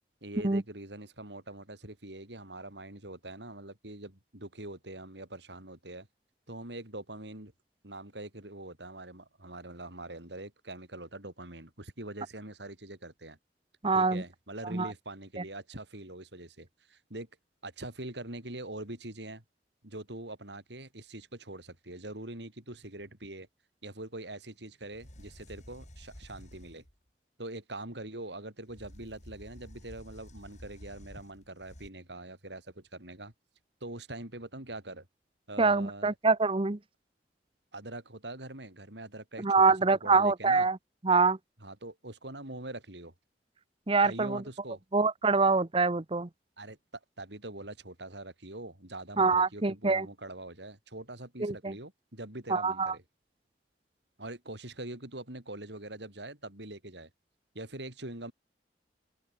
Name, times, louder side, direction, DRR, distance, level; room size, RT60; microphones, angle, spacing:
voice 1, 0.2-6.1 6.5-7.5 7.8-13.4 13.9-17.3 17.6-19.4 19.8-23.5 23.8-26.8 27.4-33.3 33.8-35.1 35.5-36.1 37.7-39.7 40.0-40.7 41.6-43.1 44.0-44.8 46.6-46.8 47.2-53.0 54.2-57.1 57.5-58.3, right 1 dB, 75° right, 6.3 m, -43 dB
voice 2, 13.8-14.2 14.6-14.9 15.4-15.5 35.6-36.8 39.4-40.8 41.0-41.4 43.9-44.4 44.9-46.3 49.2-50.1 51.4-51.7 52.5-52.9, right 4 dB, 30° right, 0.9 m, -25 dB
sound 1, 24.7-24.8 24.9-26.9 28.7-31.9, equal, 45° left, 7.4 m, -51 dB
head